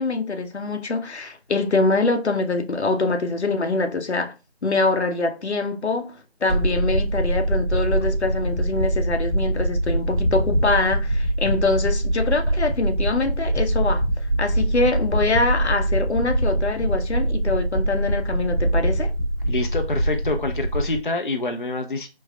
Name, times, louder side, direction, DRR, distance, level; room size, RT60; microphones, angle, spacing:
voice 1, 0.0-4.3 4.6-6.1 6.4-14.0 14.4-19.1, left 3 dB, 85° left, 0.8 m, -24 dB
sound 1, 6.5-21.0, right 1 dB, ahead, 0.6 m, -23 dB
voice 2, 19.5-22.1, left 2 dB, 50° left, 0.5 m, -26 dB
4.7 x 3.1 x 2.2 m
figure-of-eight pair, 175°, 33 cm